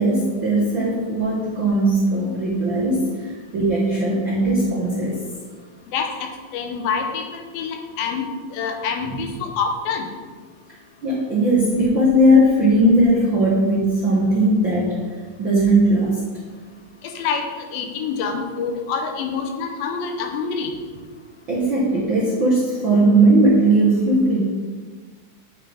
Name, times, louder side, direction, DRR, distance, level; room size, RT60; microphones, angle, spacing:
voice 1, 0.0-5.2 11.0-15.0 15.4-16.2 21.5-24.4, right 1 dB, 70° right, -5 dB, 1.1 m, -18 dB
voice 2, 5.9-8.2 8.5-10.1 17.2-20.7, left 5 dB, 85° left, 4 dB, 2.7 m, -26 dB
9.3 x 6.0 x 3.5 m, 1.5 s
omnidirectional pair, 4.0 m